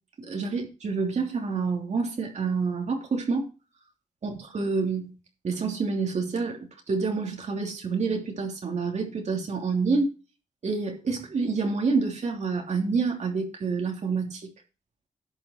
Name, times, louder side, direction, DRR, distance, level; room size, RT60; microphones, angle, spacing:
voice 1, 0.2-3.5 4.2-5.2 5.4-6.6 6.9-10.1 10.6-14.5, right 4 dB, 65° right, 3.1 m, -28 dB
11.0 x 6.1 x 4.5 m
cardioid pair, 60°, 13 cm